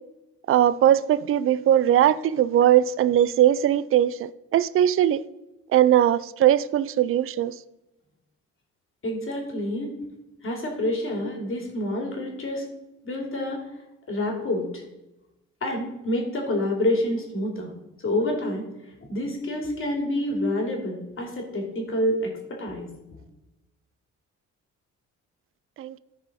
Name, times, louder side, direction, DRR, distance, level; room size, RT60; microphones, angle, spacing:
voice 1, 0.5-5.2 5.7-7.6 25.8-26.0, right 11 dB, 45° right, 0.4 m, -20 dB
voice 2, 9.0-9.9 10.4-12.6 13.0-13.6 14.1-14.8 15.6-17.7 18.0-18.7 19.0-22.9, left 1 dB, 45° left, 2.8 m, -27 dB
13.5 x 4.8 x 4.2 m
cardioid pair, 90°, 30 cm